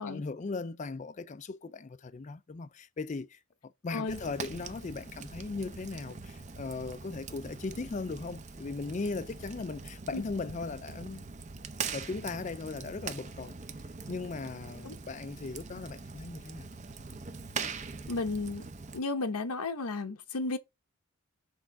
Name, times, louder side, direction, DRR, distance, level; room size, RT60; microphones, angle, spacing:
voice 1, 0.0-11.2 11.9-13.5 14.1-16.7, left 3 dB, 35° left, 0.4 m, -38 dB
Fire, 4.1-19.0, right 5 dB, 30° right, 0.6 m, -42 dB
voice 2, 18.1-18.6 18.9-20.6, left 3 dB, 90° left, 0.9 m, -33 dB
6.3 x 3.6 x 4.7 m
head